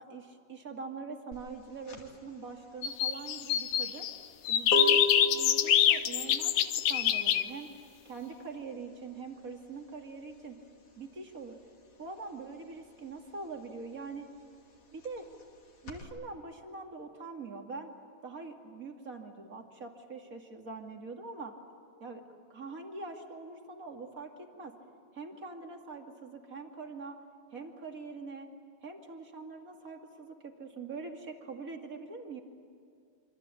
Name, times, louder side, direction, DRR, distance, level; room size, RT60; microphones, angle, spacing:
voice 1, 0.0-4.1 4.5-7.7 8.0-10.6 11.0-11.6 12.0-14.3 14.9-15.3 15.8-17.9 18.2-21.6 22.0-22.2 22.5-24.3 24.6-24.7 25.1-27.2 27.5-28.5 28.8-32.4, right 4 dB, 30° right, 3 dB, 1.9 m, -43 dB
sound 1, 1.3-11.5 11.8-16.0, equal, 40° left, 3.2 m, -37 dB
sound 2, 2.8-4.1 4.5-7.4, left 11 dB, 75° left, 1.8 m, -26 dB
27.5 x 25.5 x 8.4 m, 2.4 s
omnidirectional pair, 4.6 m